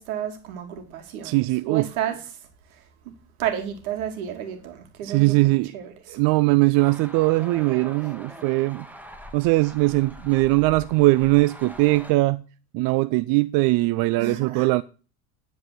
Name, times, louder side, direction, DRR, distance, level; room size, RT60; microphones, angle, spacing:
voice 1, 0.0-1.4 1.7-2.4 2.7-3.1 3.4-6.2 14.2-14.8, right 10 dB, 80° right, 2.5 m, -32 dB
voice 2, 1.2-1.9 5.0-5.7 6.1-8.9 9.3-12.4 12.7-14.8, right 21 dB, 55° right, 0.6 m, -20 dB
sound 1, 6.7-12.1, equal, 5° right, 1.6 m, -43 dB
10.5 x 4.8 x 7.6 m
hypercardioid pair, 95°, 42 cm